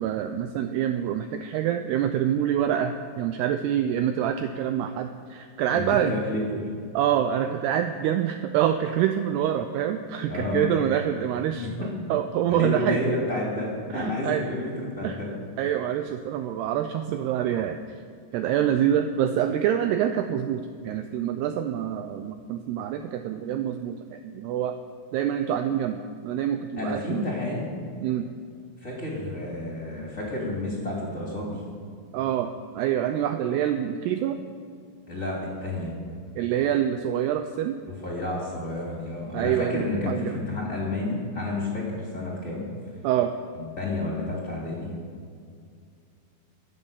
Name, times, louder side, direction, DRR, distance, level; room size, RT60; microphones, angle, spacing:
voice 1, 0.0-6.1 6.9-11.7 12.1-13.0 13.9-14.4 15.0-15.2 15.6-17.8 18.3-24.8 25.1-27.2 28.0-28.3 32.1-34.4 36.4-37.8 39.3-40.4 43.0-43.3, right 10 dB, 80° right, 7 dB, 2.4 m, -26 dB
voice 2, 5.7-6.4 10.3-10.7 11.5-11.7 12.5-15.3 26.8-27.7 28.8-31.6 35.1-36.0 38.0-42.6 43.5-44.9, left 2 dB, 20° left, -4 dB, 3.0 m, -30 dB
24.0 x 8.5 x 7.1 m, 2.3 s
omnidirectional pair, 5.2 m